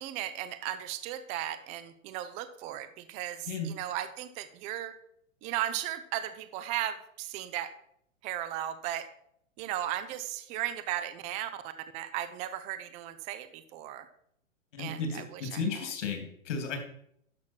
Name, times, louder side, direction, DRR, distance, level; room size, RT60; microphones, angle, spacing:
voice 1, 0.0-4.9 5.4-7.7 8.2-9.1 9.6-14.1 14.8-15.6, right 12 dB, 20° right, 11 dB, 0.5 m, -36 dB
voice 2, 14.7-16.8, left 4 dB, 60° left, 4 dB, 2.9 m, -34 dB
12.0 x 6.1 x 4.5 m, 0.70 s
hypercardioid pair, 130°, 40 cm